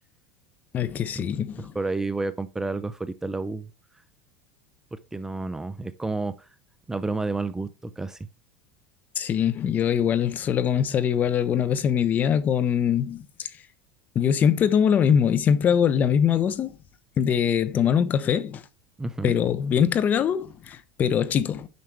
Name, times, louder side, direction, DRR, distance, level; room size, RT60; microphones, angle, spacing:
voice 1, 0.7-1.7 9.1-13.5 14.1-16.7 17.2-18.6 19.2-21.7, left 8 dB, 35° left, 1.0 m, -23 dB
voice 2, 1.6-3.7 4.9-6.5 6.9-8.2 19.0-19.4, right 3 dB, 10° right, 0.6 m, -30 dB
9.4 x 5.9 x 3.5 m
supercardioid pair, 110°, 5 cm